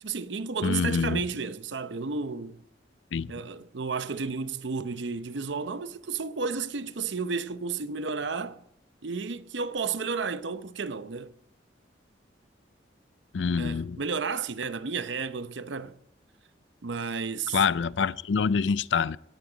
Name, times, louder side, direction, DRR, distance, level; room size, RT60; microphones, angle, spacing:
voice 1, 0.0-2.6 3.3-8.6 9.0-11.3 13.6-16.0 16.8-17.6, right 5 dB, 80° right, 0.8 m, -32 dB
voice 2, 0.6-1.2 3.1-3.3 13.3-14.0 17.5-19.2, left 5 dB, 80° left, 0.5 m, -26 dB
17.5 x 15.0 x 3.9 m
head